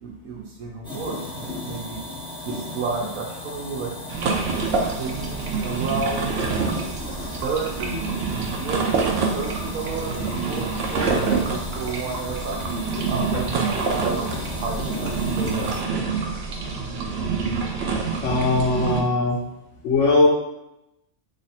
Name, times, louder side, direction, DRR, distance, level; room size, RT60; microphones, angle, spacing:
voice 1, 0.0-2.0 2.4-3.9 5.0-6.3 7.4-8.3 8.6-11.2 11.5-12.6 13.1-15.8, right 4 dB, 75° right, -1 dB, 1.0 m, -31 dB
sound 1, 0.8-15.8, left 1 dB, 5° left, 0.7 m, -36 dB
sound 2, 4.1-19.0, right 4 dB, 60° right, 0.7 m, -26 dB
voice 2, 18.2-19.4 19.8-20.3, left 2 dB, 65° left, -3 dB, 0.9 m, -19 dB
3.3 x 2.5 x 4.1 m, 0.89 s
omnidirectional pair, 1.5 m